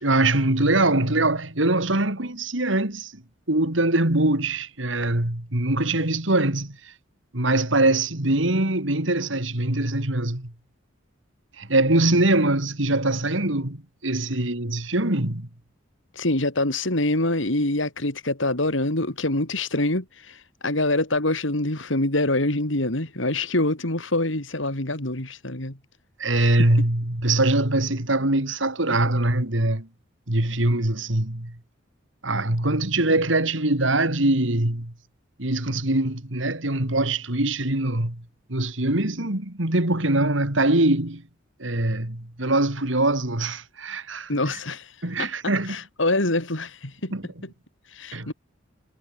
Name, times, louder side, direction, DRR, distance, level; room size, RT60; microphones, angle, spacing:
voice 1, 0.0-3.2 3.5-6.9 7.3-10.5 11.6-15.5 26.2-29.9 30.3-31.5 32.2-34.9 35.4-38.2 38.5-41.2 41.6-44.3 45.0-45.8 47.1-47.3 48.1-48.3, right 2 dB, 70° right, 3.2 m, -23 dB
voice 2, 16.1-25.8 26.3-26.7 44.3-47.1 47.9-48.3, left 2 dB, 70° left, 3.6 m, -25 dB
head